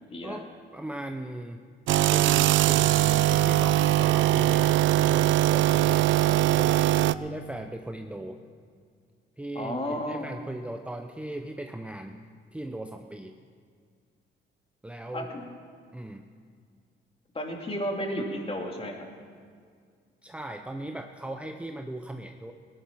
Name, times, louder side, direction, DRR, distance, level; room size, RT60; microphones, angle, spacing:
voice 1, 0.7-1.6 2.1-6.9 7.2-8.4 9.4-12.2 12.5-13.3 14.8-15.3 15.9-16.2 20.2-22.5, right 1 dB, 5° right, 4 dB, 0.7 m, -38 dB
sound 1, 1.9-7.1, right 15 dB, 70° right, 0.4 m, -21 dB
voice 2, 9.5-10.3 15.1-15.3 17.3-19.1, equal, 30° left, 1 dB, 2.6 m, -32 dB
18.0 x 10.5 x 6.0 m, 2.1 s
cardioid pair, 90°, 20 cm